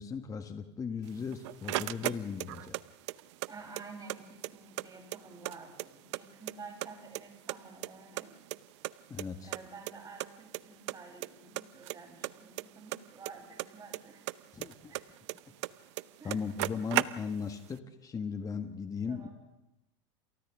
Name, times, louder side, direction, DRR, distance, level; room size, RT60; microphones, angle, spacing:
voice 1, 0.0-2.8 9.1-9.5 14.5-14.9 16.2-19.3, left 6 dB, 20° left, 7 dB, 1.4 m, -37 dB
sound 1, 1.1-2.8 3.1-4.2 4.4-4.5 4.8-6.2 6.5-7.2 7.5-8.9 9.2-9.3 9.5-9.6 9.9-10.0 10.2-10.6 10.9-11.3 11.6-14.0 14.3-15.7 16.0-16.1 16.3-17.5, right 19 dB, 70° right, 0.7 m, -35 dB
voice 2, 3.5-8.3 9.4-14.3 14.9-15.1 16.2-16.4 19.1-19.3, right 4 dB, 25° right, 0 dB, 7.9 m, -50 dB
29.0 x 27.5 x 3.7 m, 0.95 s
hypercardioid pair, 105°, 15 cm